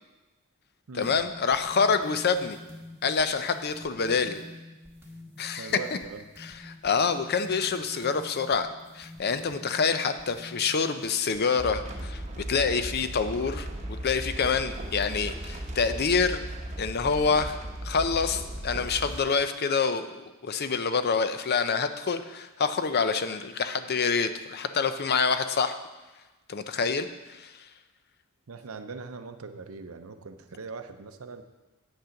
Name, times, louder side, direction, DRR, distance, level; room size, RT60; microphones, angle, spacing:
voice 1, 0.9-2.6 3.0-4.4 5.4-5.8 6.4-8.7 8.9-16.4 16.8-17.6 17.8-25.7 26.5-27.7, left 5 dB, 45° left, 10 dB, 0.5 m, -27 dB
sound 1, 1.0-11.7, left 1 dB, 10° right, 1.3 m, -48 dB
voice 2, 5.6-6.2 28.5-31.4, right 4 dB, 65° right, 9 dB, 0.6 m, -40 dB
sound 2, 11.6-19.2, right 1 dB, 30° right, 1.0 m, -37 dB
8.4 x 6.5 x 5.8 m, 1.1 s
head